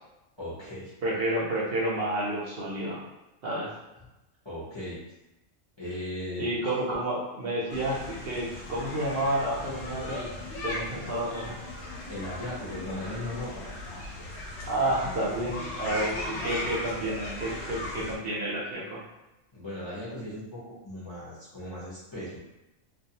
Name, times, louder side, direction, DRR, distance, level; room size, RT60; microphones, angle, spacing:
voice 1, 0.4-0.9 4.4-5.0 5.8-6.5 12.1-14.1 15.8-16.1 19.5-22.4, left 1 dB, 35° left, -9 dB, 0.4 m, -38 dB
voice 2, 1.0-3.0 3.4-3.7 6.4-10.3 10.6-11.6 14.7-19.0, right 1 dB, 60° right, -6 dB, 0.7 m, -30 dB
sound 1, 7.7-18.2, left 1 dB, 70° left, 0.9 m, -37 dB
2.3 x 2.3 x 2.7 m, 0.99 s
omnidirectional pair, 1.4 m